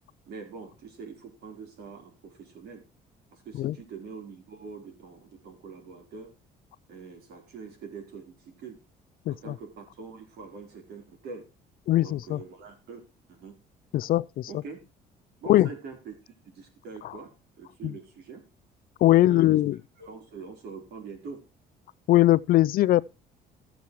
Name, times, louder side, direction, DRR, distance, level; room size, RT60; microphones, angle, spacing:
voice 1, 0.3-2.8 3.3-6.3 6.9-8.8 9.3-11.4 12.0-13.0 13.3-13.5 14.5-14.8 15.4-17.3 17.6-18.4 19.2-19.6 20.0-21.4, right 5 dB, 70° right, 3.9 m, -44 dB
voice 2, 11.9-12.4 13.9-14.5 15.5-15.7 17.8-17.9 19.0-19.8 22.1-23.0, left 15 dB, 60° left, 0.4 m, -21 dB
15.0 x 7.1 x 3.1 m
cardioid pair, 110°, 17 cm